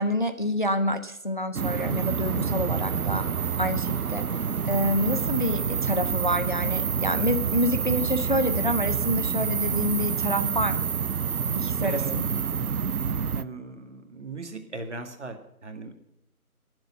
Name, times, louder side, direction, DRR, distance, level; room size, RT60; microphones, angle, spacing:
voice 1, 0.0-3.2 3.6-4.2 4.7-10.8 11.6-12.2, equal, 35° left, 8 dB, 0.7 m, -27 dB
sound 1, 1.5-13.4, right 6 dB, 75° right, 0.7 m, -27 dB
voice 2, 11.8-12.2 13.3-15.9, right 3 dB, 50° right, 5 dB, 2.1 m, -38 dB
20.5 x 7.7 x 5.8 m, 0.80 s
figure-of-eight pair, 165°, 44 cm